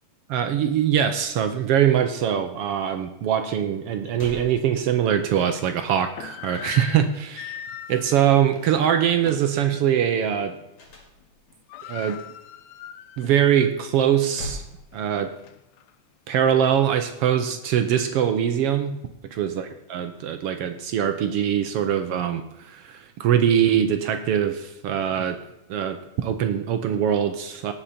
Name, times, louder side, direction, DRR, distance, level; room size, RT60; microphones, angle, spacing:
voice 1, 0.3-10.5 11.9-12.2 13.2-14.6 14.9-15.3 16.3-19.0 19.3-25.4 25.7-27.7, right 9 dB, 70° right, 7 dB, 1.5 m, -23 dB
sound 1, 3.7-3.8 4.1-5.3 10.8-11.6 14.0-15.6, equal, 55° left, 3.7 m, -40 dB
sound 2, 4.1-4.2 4.7-4.8 5.8-9.6 10.0-10.2 10.5-11.0 11.2-11.3 11.5-13.5 13.9-14.0 14.6-15.9, left 9 dB, 75° left, 1.9 m, -40 dB
17.5 x 6.6 x 4.3 m, 0.89 s
omnidirectional pair, 3.3 m